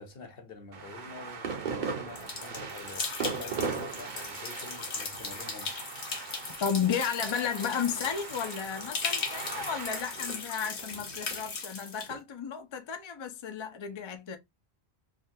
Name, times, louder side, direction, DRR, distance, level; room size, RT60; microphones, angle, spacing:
voice 1, 0.0-5.7, left 4 dB, 60° left, 1.0 m, -47 dB
sound 1, 0.7-12.2, right 5 dB, 50° right, 0.8 m, -39 dB
sound 2, 2.2-12.1, left 5 dB, 85° left, 1.1 m, -38 dB
voice 2, 6.6-14.4, left 7 dB, 45° left, 0.3 m, -33 dB
3.4 x 2.2 x 2.6 m
omnidirectional pair, 1.1 m